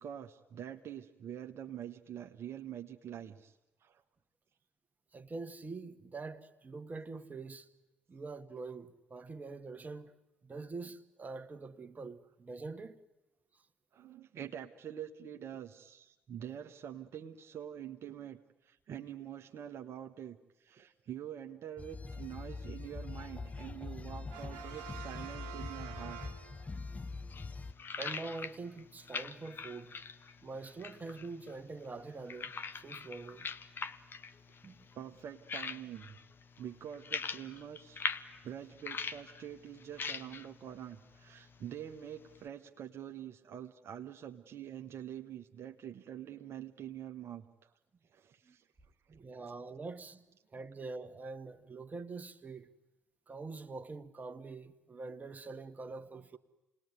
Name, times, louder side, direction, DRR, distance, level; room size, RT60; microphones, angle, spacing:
voice 1, 0.0-3.6 3.8-4.0 13.9-26.2 34.9-36.2 36.6-38.1 38.4-47.7 48.1-48.7, right 10 dB, 55° right, 1.1 m, -46 dB
voice 2, 5.1-7.7 8.1-10.1 10.4-13.0 13.5-13.6 28.0-30.0 30.4-33.5 34.6-34.8 48.4-48.6 49.1-52.7 53.3-56.4, right 3 dB, 30° right, 1.6 m, -45 dB
sound 1, 21.8-27.7, left 3 dB, 25° left, 0.9 m, -43 dB
Brass instrument, 24.3-27.0, right 9 dB, 80° right, 1.5 m, -48 dB
sound 2, 26.7-42.5, left 5 dB, 45° left, 1.3 m, -44 dB
28.0 x 20.0 x 9.6 m
hypercardioid pair, 45°, 5 cm